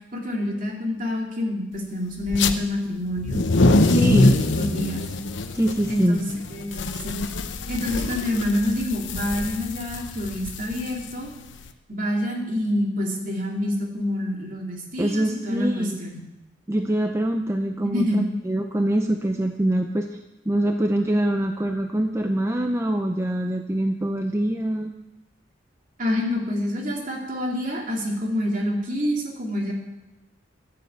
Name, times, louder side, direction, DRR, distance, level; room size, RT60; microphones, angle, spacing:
voice 1, 0.1-3.4 3.9-5.0 5.9-6.7 7.0-7.1 7.7-11.3 11.9-16.2 17.8-18.3 26.0-29.7, left 1 dB, 45° right, 0 dB, 2.8 m, -27 dB
sound 1, 2.3-2.5 3.1-11.6, left 2 dB, 70° left, 0.9 m, -24 dB
voice 2, 3.8-4.4 5.5-6.2 15.0-16.0 16.7-20.2 20.5-24.9, right 1 dB, 15° right, 4 dB, 0.6 m, -24 dB
14.0 x 7.6 x 8.1 m, 0.98 s
head